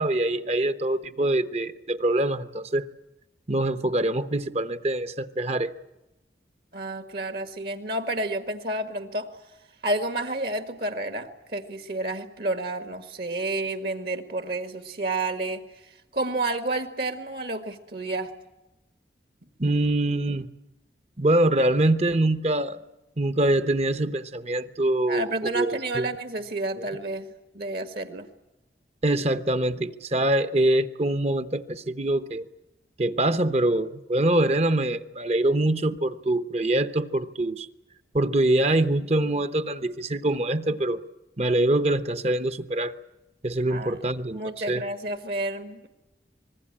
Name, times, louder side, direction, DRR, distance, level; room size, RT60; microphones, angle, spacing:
voice 1, 0.0-2.9 3.5-5.7 19.6-20.5 21.2-22.8 23.2-25.3 25.5-26.1 26.8-26.9 29.0-32.4 33.0-37.7 38.1-41.0 41.4-42.9 43.4-44.4 44.7-44.8, right 1 dB, 35° right, 0.9 m, -24 dB
voice 2, 6.7-9.3 9.8-15.6 16.1-18.3 25.1-27.3 27.5-28.3 43.7-44.0 44.3-45.9, right 2 dB, 60° right, 1.7 m, -30 dB
25.5 x 20.0 x 8.7 m
head